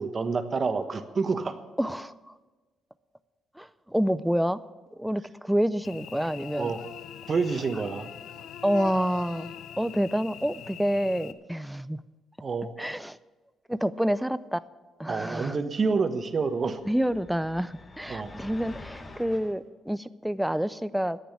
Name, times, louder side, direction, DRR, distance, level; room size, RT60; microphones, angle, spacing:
voice 1, 0.0-1.6 6.5-6.8 7.3-8.1 12.4-12.7 15.1-16.8 18.1-18.3, right 4 dB, 40° right, 9 dB, 1.2 m, -28 dB
voice 2, 1.8-2.4 3.6-4.6 5.0-6.7 8.6-12.0 12.8-13.2 13.7-14.6 15.0-15.6 16.9-21.2, equal, 5° right, 16 dB, 0.5 m, -28 dB
Cricket / Buzz, 5.8-11.3, left 9 dB, 80° left, 0.6 m, -42 dB
sound 1, 16.6-19.6, left 2 dB, 30° left, 1.4 m, -46 dB
10.5 x 8.8 x 9.9 m, 1.3 s
cardioid pair, 90°, 0 cm